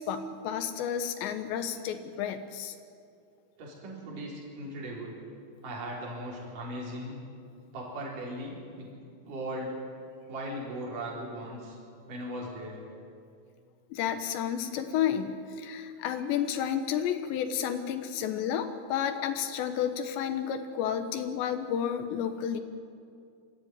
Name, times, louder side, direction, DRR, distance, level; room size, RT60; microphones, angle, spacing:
voice 1, 0.0-2.7 13.9-22.6, left 9 dB, 90° left, 8 dB, 3.4 m, -31 dB
voice 2, 3.6-5.2 5.6-7.2 7.7-8.9 9.3-9.7 10.3-11.8 12.1-12.8, right 1 dB, 50° right, -3 dB, 5.7 m, -38 dB
25.0 x 15.0 x 9.5 m, 2.4 s
omnidirectional pair, 4.9 m